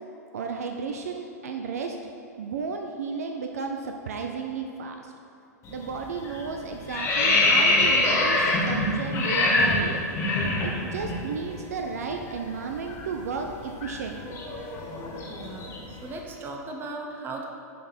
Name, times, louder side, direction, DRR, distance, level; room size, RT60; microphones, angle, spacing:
voice 1, 0.3-2.0 2.4-5.1 5.7-10.0 10.6-14.4, right 5 dB, 60° right, 4 dB, 0.5 m, -33 dB
sound 1, 5.6-5.9 6.2-11.2 11.5-11.6 12.0-16.0, left 2 dB, 30° left, 1.8 m, -25 dB
voice 2, 15.3-17.5, right 2 dB, 25° right, 2 dB, 1.0 m, -37 dB
10.0 x 4.0 x 4.2 m, 2.7 s
figure-of-eight pair, 100°, 9 cm